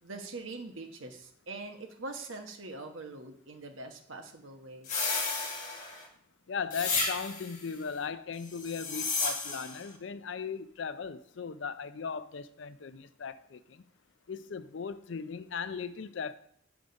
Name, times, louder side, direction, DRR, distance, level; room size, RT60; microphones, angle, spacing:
voice 1, 0.0-4.9, right 3 dB, 75° right, 1.2 m, -43 dB
sound 1, 4.9-6.1 6.7-7.6 8.5-9.8, left 4 dB, 40° left, 1.9 m, -32 dB
voice 2, 6.5-13.8 14.3-16.3, left 6 dB, 65° left, 0.5 m, -38 dB
8.2 x 5.0 x 5.1 m
head